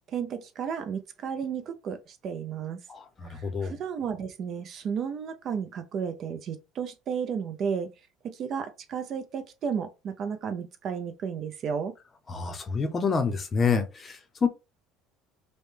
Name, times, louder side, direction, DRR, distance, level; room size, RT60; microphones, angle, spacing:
voice 1, 0.1-2.8 3.3-7.9 8.2-11.9, right 7 dB, 40° right, 0.5 m, -33 dB
voice 2, 2.9-3.8 12.3-14.5, left 5 dB, 25° left, 0.6 m, -28 dB
5.2 x 2.2 x 3.2 m
cardioid pair, 140°, 0 cm